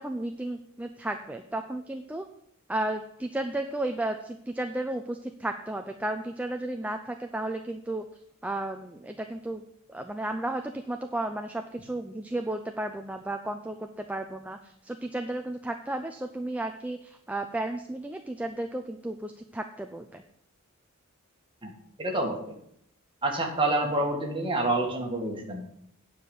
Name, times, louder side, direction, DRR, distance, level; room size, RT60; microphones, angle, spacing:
voice 1, 0.0-2.3 2.7-8.1 8.4-9.6 9.9-20.2, right 1 dB, 5° right, 5 dB, 0.4 m, -33 dB
voice 2, 22.0-22.4 23.2-25.7, right 2 dB, 25° right, 1 dB, 1.8 m, -27 dB
9.4 x 5.0 x 7.8 m, 0.72 s
head